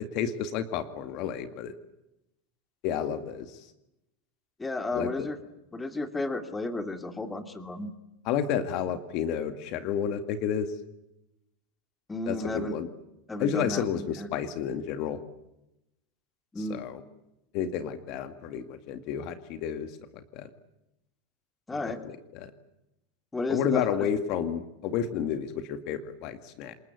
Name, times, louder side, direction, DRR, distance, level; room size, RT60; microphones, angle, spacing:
voice 1, 0.0-1.7 2.8-3.6 4.9-5.3 8.3-10.7 12.3-12.9 13.4-15.2 16.6-17.0 17.5-20.5 21.7-22.5 23.5-26.7, left 8 dB, 55° left, 10 dB, 2.1 m, -31 dB
voice 2, 4.6-5.4 5.7-7.9 12.1-12.8 13.3-14.3 16.5-16.8 21.7-22.0 23.3-24.0, left 2 dB, 10° left, 8 dB, 2.6 m, -33 dB
27.5 x 20.5 x 9.5 m, 0.91 s
supercardioid pair, 115°, 0 cm